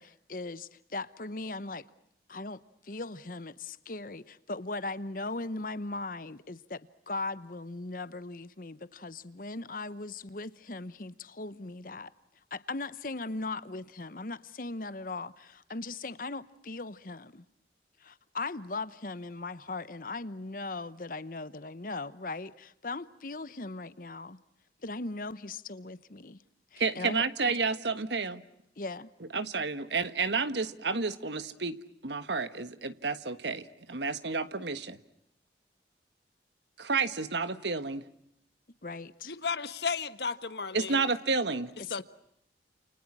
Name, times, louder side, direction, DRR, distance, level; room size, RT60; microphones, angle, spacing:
voice 1, 0.0-1.9 2.3-12.1 12.5-17.5 18.0-24.4 24.8-26.4 26.7-27.3 28.8-29.1 38.8-39.4 41.8-42.0, left 3 dB, 50° left, 0.9 m, -39 dB
voice 2, 26.8-28.4 29.3-31.8 32.0-35.0 36.8-38.0 40.7-41.7, right 4 dB, 75° right, 1.5 m, -30 dB
voice 3, 39.3-41.0 41.9-42.0, left 5 dB, 65° left, 1.3 m, -34 dB
29.5 x 29.0 x 6.1 m
head